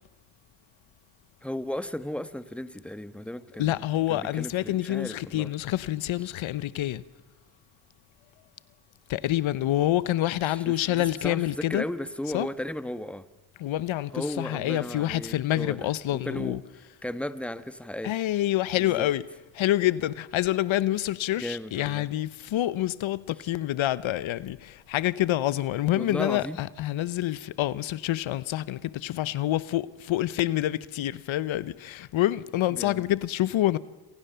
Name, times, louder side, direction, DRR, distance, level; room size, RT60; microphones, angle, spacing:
voice 1, 1.4-5.5 10.4-13.2 14.1-16.6 17.0-18.2 18.8-19.1 21.4-22.1 25.9-26.6 32.7-33.1, left 1 dB, 5° left, 1.5 m, -35 dB
voice 2, 3.6-7.0 9.1-11.8 12.3-12.5 13.6-16.6 18.0-19.2 19.5-33.8, left 14 dB, 90° left, 0.9 m, -27 dB
28.0 x 27.0 x 6.8 m
cardioid pair, 65°, 45 cm